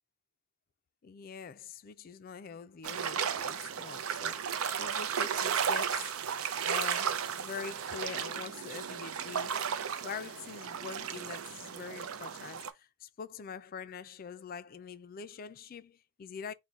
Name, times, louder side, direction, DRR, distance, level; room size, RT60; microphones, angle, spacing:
voice 1, 1.0-6.1 6.6-9.7 10.0-16.5, left 6 dB, 45° left, 0.3 m, -44 dB
sound 1, 2.8-12.7, right 7 dB, 90° right, 0.5 m, -34 dB
3.9 x 2.2 x 4.4 m
head